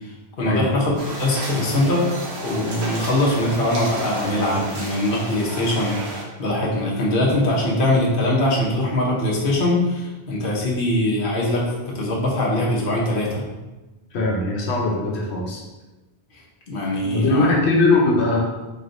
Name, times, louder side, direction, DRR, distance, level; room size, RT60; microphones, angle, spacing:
voice 1, 0.0-2.1 2.4-11.6 11.9-13.4 16.3-17.5, left 1 dB, 55° left, -3 dB, 1.0 m, -22 dB
sound 1, 1.0-6.2, right 1 dB, 80° right, 1.1 m, -32 dB
voice 2, 14.1-15.6 17.0-18.4, left 2 dB, 90° left, -2 dB, 1.0 m, -20 dB
4.2 x 3.2 x 2.6 m, 1.1 s
omnidirectional pair, 1.1 m